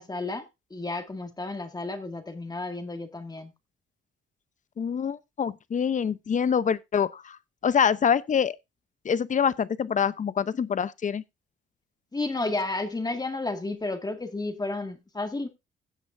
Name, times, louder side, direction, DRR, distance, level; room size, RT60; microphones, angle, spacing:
voice 1, 0.0-3.5 12.1-15.5, left 2 dB, 20° left, 2.0 m, -32 dB
voice 2, 4.8-7.4 7.6-8.6 9.0-11.2, left 7 dB, 40° left, 0.8 m, -25 dB
16.0 x 8.0 x 2.6 m
cardioid pair, 90°, 20 cm